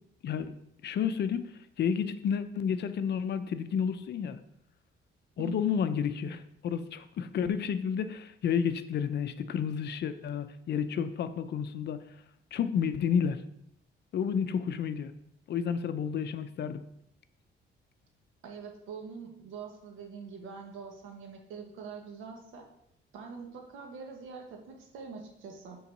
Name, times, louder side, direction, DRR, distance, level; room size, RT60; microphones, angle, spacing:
voice 1, 0.2-0.6 0.8-4.4 5.4-12.0 12.5-13.4 14.1-15.1 15.5-16.8, left 7 dB, 60° left, 11 dB, 0.6 m, -31 dB
voice 2, 5.4-5.8 18.4-22.6 23.1-25.8, right 5 dB, 90° right, 2 dB, 1.3 m, -44 dB
5.6 x 3.9 x 5.4 m, 0.76 s
cardioid pair, 90°, 20 cm